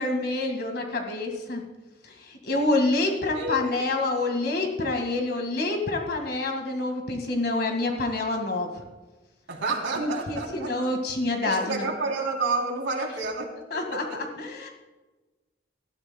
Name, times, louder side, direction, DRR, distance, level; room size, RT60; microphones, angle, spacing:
voice 1, 0.0-1.6 2.0-8.7 9.9-11.8 13.7-14.7, left 2 dB, 60° left, 3 dB, 1.9 m, -27 dB
voice 2, 9.5-10.7 11.4-13.5 13.9-14.2, right 3 dB, 85° right, 0 dB, 3.2 m, -29 dB
19.5 x 13.0 x 2.3 m, 1.2 s
head